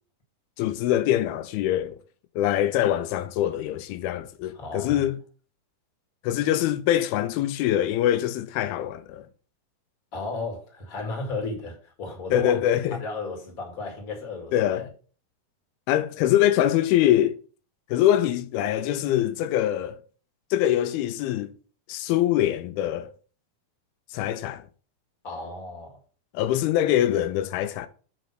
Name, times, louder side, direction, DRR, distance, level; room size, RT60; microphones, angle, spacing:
voice 1, 0.6-2.0 2.4-5.2 6.2-9.3 12.3-13.0 14.5-14.9 15.9-17.4 17.9-20.0 20.5-21.5 21.9-23.1 24.1-24.6 26.3-27.9, left 12 dB, 90° left, 2.5 m, -24 dB
voice 2, 4.5-5.0 10.1-14.9 25.2-26.0, left 3 dB, 30° left, 1.9 m, -34 dB
6.1 x 5.0 x 5.9 m
omnidirectional pair, 4.4 m